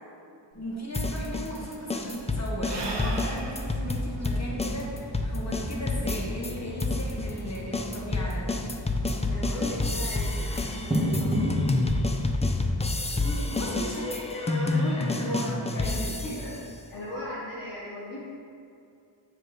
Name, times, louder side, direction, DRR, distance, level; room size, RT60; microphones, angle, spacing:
voice 1, 0.5-8.5 13.1-14.0 14.7-16.6, equal, 35° left, -3 dB, 1.3 m, -36 dB
Sigh / Breathing, 0.6-0.7 0.8-5.6, right 2 dB, 70° right, 1.0 m, -39 dB
sound 1, 0.9-6.5 6.8-16.5, left 2 dB, 15° left, 0.3 m, -28 dB
sound 2, 3.1-11.9, equal, 15° right, 1.3 m, -34 dB
voice 2, 9.2-11.6 14.0-16.6 16.9-18.3, left 1 dB, 85° left, -11 dB, 1.5 m, -37 dB
7.6 x 4.8 x 3.2 m, 2.4 s
wide cardioid pair, 75°, 44 cm